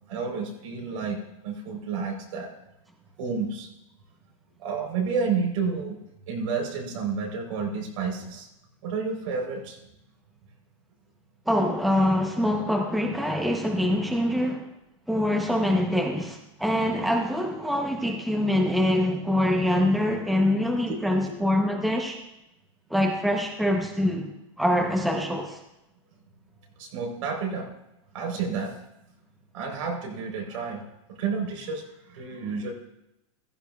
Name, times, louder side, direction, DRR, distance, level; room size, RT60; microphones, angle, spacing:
voice 1, 0.1-2.5 3.2-3.7 4.6-6.0 6.3-8.5 8.8-9.8 13.2-13.3 20.9-21.0 21.3-21.4 26.8-27.7 28.1-28.8 29.5-32.7, right 5 dB, 80° right, 0 dB, 3.8 m, -30 dB
voice 2, 11.5-14.6 15.1-22.2 22.9-24.3 24.6-25.6, left 1 dB, ahead, 1 dB, 0.8 m, -24 dB
15.0 x 13.0 x 2.3 m, 0.88 s
supercardioid pair, 160°, 16 cm